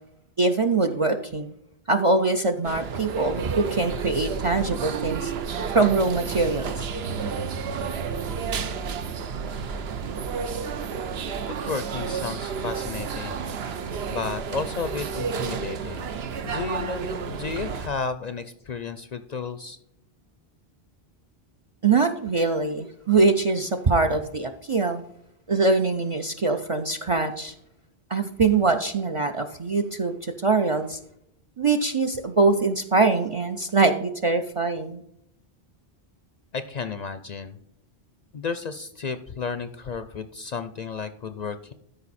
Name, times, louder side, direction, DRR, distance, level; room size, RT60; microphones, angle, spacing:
voice 1, 0.4-1.5 1.9-5.3 5.7-6.9 21.8-25.0 25.5-27.5 28.1-31.0 31.6-35.0, right 3 dB, 40° right, 6 dB, 0.5 m, -23 dB
sound 1, 2.6-17.9, right 6 dB, 75° right, 1.0 m, -31 dB
voice 2, 11.6-13.4 14.1-16.1 16.4-19.8 36.5-37.6 38.3-41.7, left 5 dB, 50° left, 11 dB, 0.5 m, -32 dB
13.0 x 5.3 x 4.1 m, 0.76 s
omnidirectional pair, 1.1 m